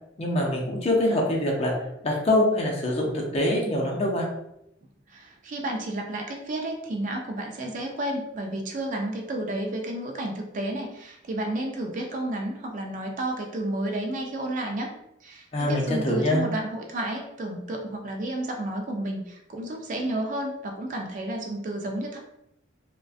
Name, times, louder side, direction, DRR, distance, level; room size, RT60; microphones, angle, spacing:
voice 1, 0.2-1.7 2.0-4.2 15.5-16.4, left 1 dB, 30° left, -2 dB, 0.6 m, -24 dB
voice 2, 5.1-14.9 15.2-22.2, right 1 dB, 40° right, 2 dB, 0.3 m, -31 dB
2.4 x 2.1 x 2.4 m, 0.81 s
head